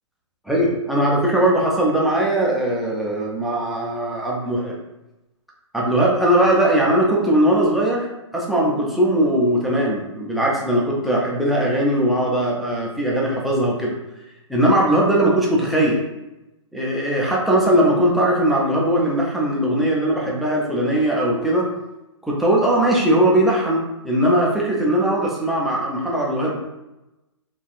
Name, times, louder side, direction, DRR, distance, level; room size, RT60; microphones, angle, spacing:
voice 1, 0.5-4.7 5.7-8.1 8.3-13.9 14.5-16.0 16.7-21.7 22.2-26.6, right 1 dB, ahead, -4 dB, 0.3 m, -19 dB
3.3 x 2.2 x 2.4 m, 0.97 s
hypercardioid pair, 130°, 16 cm